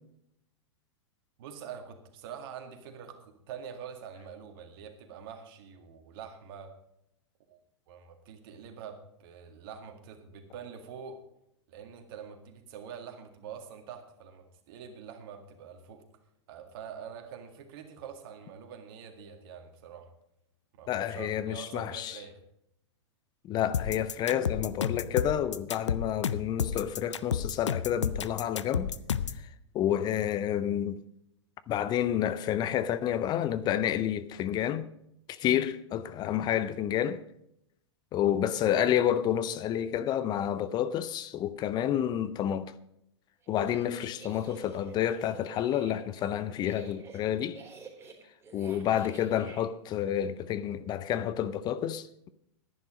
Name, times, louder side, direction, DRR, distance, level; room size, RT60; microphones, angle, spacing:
voice 1, 1.4-6.8 7.5-7.6 7.9-11.2 11.7-16.0 16.5-20.1 20.7-22.4, right 7 dB, 50° right, 2.0 m, -45 dB
voice 2, 20.9-22.2 23.5-28.9 29.7-31.0 31.7-34.8 35.3-37.2 38.1-42.7 43.5-47.6 48.5-52.3, left 10 dB, 30° left, 0.6 m, -29 dB
sound 1, 23.7-29.4, left 7 dB, 75° left, 0.6 m, -31 dB
sound 2, 43.4-49.6, right 4 dB, 15° right, 3.7 m, -50 dB
11.0 x 10.5 x 5.1 m
figure-of-eight pair, 100°, 15 cm